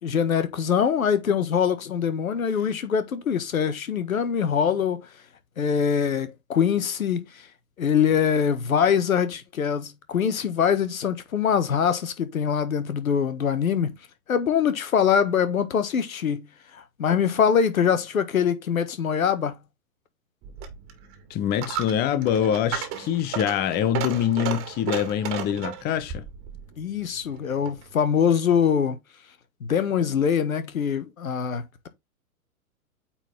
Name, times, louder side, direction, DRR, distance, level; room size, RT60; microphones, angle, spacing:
voice 1, 0.0-5.1 5.6-7.5 7.8-13.9 14.3-16.5 16.7-19.6 26.8-29.0 29.6-31.9, left 7 dB, 70° left, 1.7 m, -23 dB
Coin (dropping), 20.4-27.9, right 9 dB, 30° right, 2.0 m, -35 dB
voice 2, 21.3-26.2, left 9 dB, 20° left, 0.8 m, -25 dB
8.9 x 4.6 x 3.6 m
figure-of-eight pair, 110°, 43 cm